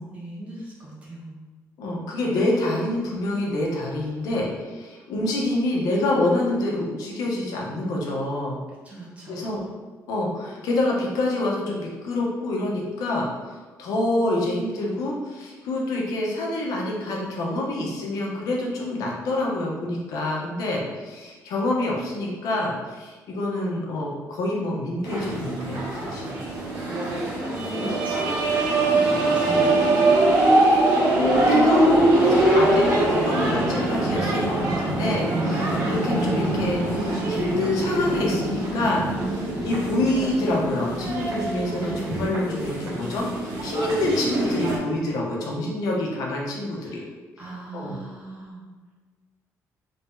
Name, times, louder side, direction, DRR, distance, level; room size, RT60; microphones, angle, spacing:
voice 1, 0.1-1.3 8.8-9.5 27.3-29.7 46.8-47.0 47.4-48.6, right 1 dB, 20° right, -6 dB, 1.1 m, -38 dB
voice 2, 1.8-8.6 9.3-9.6 10.1-26.4 30.7-39.0 39.6-43.3 43.6-47.0 47.7-48.0, left 2 dB, 80° left, -2 dB, 0.8 m, -26 dB
sound 1, 25.0-44.8, right 2 dB, 75° right, 1.1 m, -23 dB
3.3 x 2.8 x 3.7 m, 1.4 s
cardioid pair, 160°, 6 cm